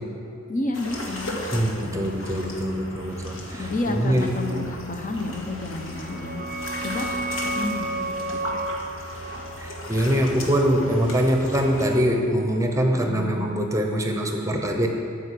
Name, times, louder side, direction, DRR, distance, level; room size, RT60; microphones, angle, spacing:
voice 1, 0.5-2.1 3.6-6.4 6.8-8.1 12.9-13.5, left 2 dB, 40° left, 3 dB, 0.9 m, -31 dB
sound 1, 0.7-12.0, left 1 dB, 65° left, 1.7 m, -36 dB
voice 2, 1.5-4.3 9.6-14.9, equal, 15° right, 3 dB, 0.8 m, -23 dB
sound 2, 5.8-11.2, right 2 dB, 40° right, 0.4 m, -33 dB
12.5 x 5.1 x 8.4 m, 2.7 s
head